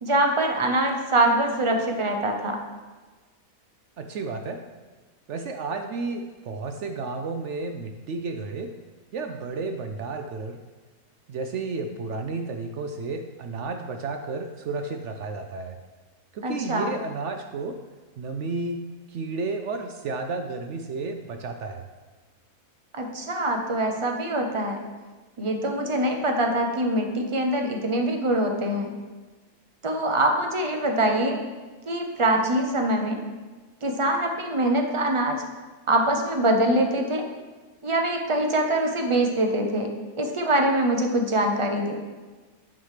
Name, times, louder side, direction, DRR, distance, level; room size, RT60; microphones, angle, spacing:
voice 1, 0.0-2.6 16.4-16.9 22.9-24.8 25.4-28.9 29.8-31.4 31.9-33.2 33.8-35.4 35.9-37.2 37.8-39.9 40.2-42.0, right 1 dB, 45° right, 3 dB, 0.4 m, -24 dB
voice 2, 4.0-4.6 5.3-8.7 9.1-10.6 11.3-15.8 16.3-17.8 18.2-18.8 19.1-21.9, right 3 dB, 65° right, 5 dB, 0.7 m, -32 dB
9.3 x 3.3 x 6.5 m, 1.3 s
omnidirectional pair, 1.7 m